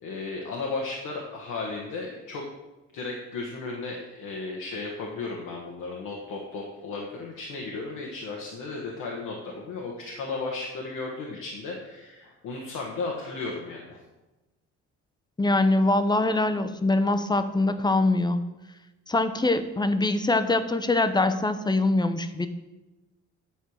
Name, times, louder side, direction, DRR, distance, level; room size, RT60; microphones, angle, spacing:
voice 1, 0.0-2.4 2.9-14.0, left 3 dB, 85° left, -1 dB, 1.3 m, -35 dB
voice 2, 15.4-18.4 19.1-22.5, left 2 dB, 15° left, 10 dB, 0.6 m, -23 dB
9.1 x 4.5 x 6.4 m, 1.1 s
cardioid pair, 90°, 30 cm